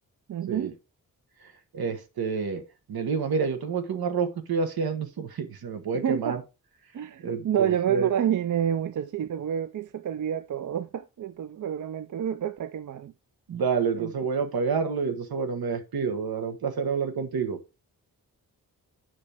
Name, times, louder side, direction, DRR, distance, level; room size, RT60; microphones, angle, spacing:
voice 1, 0.3-0.7 6.0-6.4 6.9-13.1 14.0-14.3, right 9 dB, 55° right, 0.5 m, -29 dB
voice 2, 1.7-2.6 2.9-6.4 7.2-8.1 13.5-17.6, right 5 dB, 85° right, 1.4 m, -28 dB
9.7 x 5.3 x 3.5 m
wide cardioid pair, 160°, 36 cm